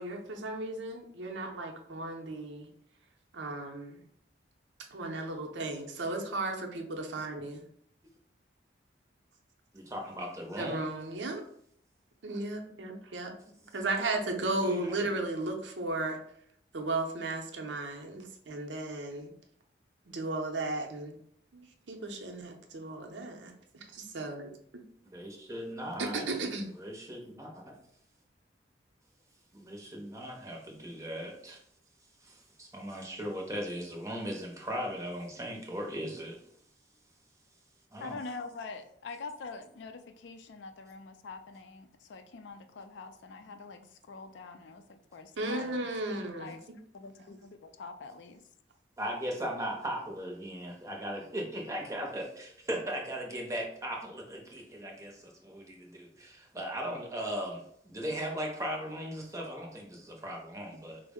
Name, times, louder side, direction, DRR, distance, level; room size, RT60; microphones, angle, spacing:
voice 1, 0.0-2.7 3.3-4.0 4.9-7.6 10.6-11.4 12.2-13.3 13.7-16.2 16.7-19.3 20.1-21.2 21.5-21.6 21.9-23.5 23.9-24.5 26.0-26.7 45.4-46.5, right 2 dB, 70° right, 3 dB, 0.6 m, -35 dB
voice 2, 9.7-10.9 13.6-13.8 14.4-15.2 25.0-26.3 26.7-27.8 29.5-31.6 32.2-36.4 37.9-38.2 49.0-61.0, equal, 15° right, 0 dB, 0.6 m, -38 dB
voice 3, 38.0-45.9 46.4-46.6 46.9-48.4, left 4 dB, 70° left, 8 dB, 0.4 m, -45 dB
4.3 x 2.0 x 3.5 m, 0.68 s
head